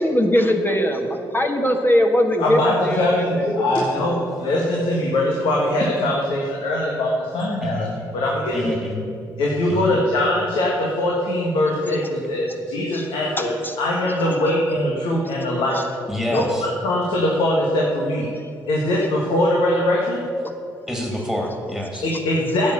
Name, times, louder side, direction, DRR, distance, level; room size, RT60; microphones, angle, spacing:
voice 1, 0.0-4.3 12.9-13.1 13.4-13.7 15.7-15.8 22.1-22.2, equal, 20° left, 4 dB, 1.3 m, -21 dB
voice 2, 2.4-8.8 9.4-15.8 16.3-18.3 18.7-20.2 22.0-22.7, left 1 dB, 75° left, -3 dB, 1.8 m, -22 dB
voice 3, 7.6-7.9 8.5-9.1 9.7-10.0 16.1-16.7 20.9-22.1, left 1 dB, 5° left, 0 dB, 2.6 m, -27 dB
10.5 x 7.5 x 7.0 m, 2.4 s
supercardioid pair, 50°, 9 cm